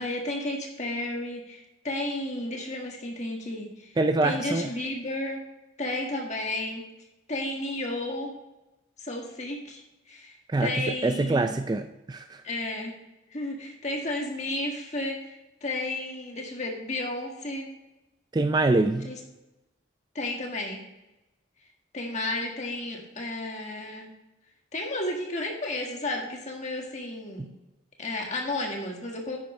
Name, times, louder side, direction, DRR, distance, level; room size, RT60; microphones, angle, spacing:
voice 1, 0.0-5.4 5.8-6.8 7.3-8.3 9.0-11.5 12.4-13.0 13.3-17.7 19.0-19.2 20.1-20.8 21.9-24.1 24.7-27.5 28.0-29.4, left 2 dB, 35° left, 1 dB, 1.7 m, -33 dB
voice 2, 4.0-4.7 10.5-12.4 18.3-19.1, right 2 dB, 20° right, 8 dB, 0.3 m, -25 dB
10.5 x 8.8 x 3.2 m, 1.0 s
head